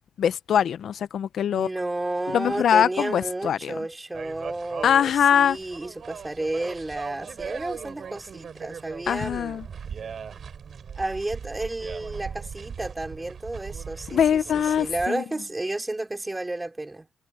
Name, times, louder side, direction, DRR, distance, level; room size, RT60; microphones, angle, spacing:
voice 1, 0.2-1.7 2.3-3.7 4.8-5.6 9.1-9.6 14.1-15.2, left 8 dB, 60° left, 0.7 m, -22 dB
voice 2, 1.5-9.6 11.0-17.1, right 2 dB, 15° right, 4.6 m, -32 dB
sound 1, 4.1-15.1, right 7 dB, 50° right, 4.1 m, -39 dB
cardioid pair, 90°, 0 cm